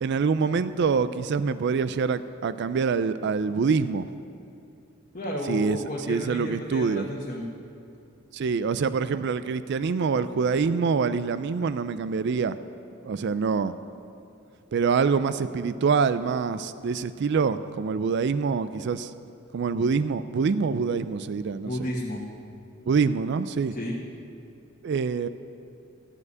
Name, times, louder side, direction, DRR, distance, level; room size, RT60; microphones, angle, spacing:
voice 1, 0.0-4.1 5.5-5.8 6.1-7.1 8.3-12.6 13.0-13.8 14.7-19.1 19.5-21.9 22.9-23.7 24.8-25.3, right 5 dB, 55° right, 14 dB, 0.4 m, -25 dB
voice 2, 5.1-7.5 21.6-22.2 23.7-24.0, equal, 40° left, -4 dB, 1.2 m, -32 dB
14.5 x 5.3 x 9.5 m, 2.7 s
head